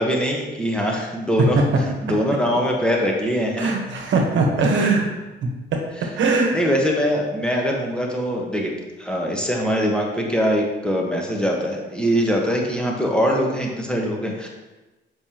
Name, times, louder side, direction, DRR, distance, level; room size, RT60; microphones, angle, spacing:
voice 1, 0.0-1.6 2.0-3.7 6.5-8.7 9.0-14.5, equal, 5° left, -1 dB, 1.2 m, -22 dB
voice 2, 3.6-5.1 5.4-6.6, right 3 dB, 75° right, 2 dB, 1.2 m, -21 dB
7.0 x 5.3 x 2.9 m, 1.1 s
cardioid pair, 90°, 20 cm